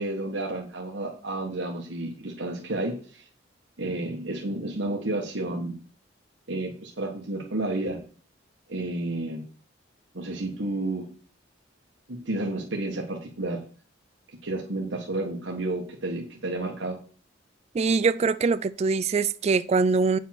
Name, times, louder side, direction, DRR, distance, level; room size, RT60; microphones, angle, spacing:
voice 1, 0.0-3.3 3.8-5.8 6.5-8.0 8.7-9.4 10.1-11.1 12.1-13.6 14.4-17.0, right 2 dB, 70° right, 1.5 m, -31 dB
voice 2, 17.7-20.2, right 4 dB, 35° right, 0.3 m, -23 dB
8.7 x 5.5 x 5.9 m
head